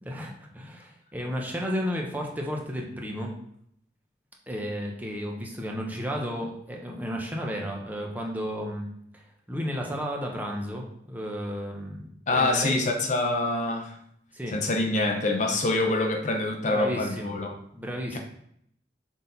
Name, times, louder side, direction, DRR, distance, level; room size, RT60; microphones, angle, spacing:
voice 1, 0.0-3.3 4.5-8.9 9.1-12.8 14.3-14.6 16.7-17.3 17.7-18.2, equal, 10° right, 0 dB, 0.9 m, -33 dB
voice 2, 12.3-13.9 14.5-17.6 18.1-18.2, left 2 dB, 40° left, 3 dB, 0.7 m, -25 dB
6.3 x 4.0 x 4.0 m, 0.70 s
head